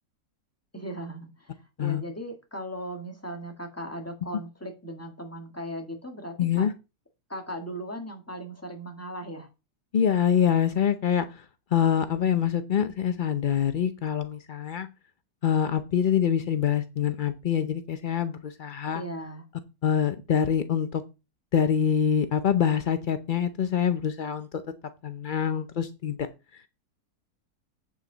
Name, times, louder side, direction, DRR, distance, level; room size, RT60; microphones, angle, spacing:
voice 1, 0.7-6.7 7.3-9.5 18.9-19.4, right 1 dB, 10° left, 4 dB, 1.6 m, -38 dB
voice 2, 6.4-6.7 9.9-11.3 11.7-14.9 15.4-19.0 19.8-21.0 21.5-24.5 25.0-26.2, left 8 dB, 75° left, 10 dB, 0.4 m, -25 dB
8.1 x 7.6 x 3.9 m, 0.28 s
omnidirectional pair, 1.8 m